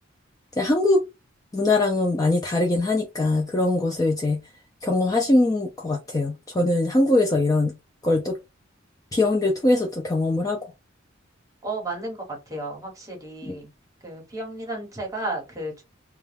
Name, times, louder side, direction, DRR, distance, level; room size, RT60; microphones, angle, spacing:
voice 1, 0.6-1.0 1.5-4.4 4.8-7.7 8.0-8.4 9.1-10.6 13.4-13.6, left 2 dB, 20° left, 0.4 m, -22 dB
voice 2, 11.6-12.2 12.5-13.7 14.0-15.8, right 2 dB, 20° right, 1.1 m, -33 dB
2.3 x 2.2 x 3.3 m
head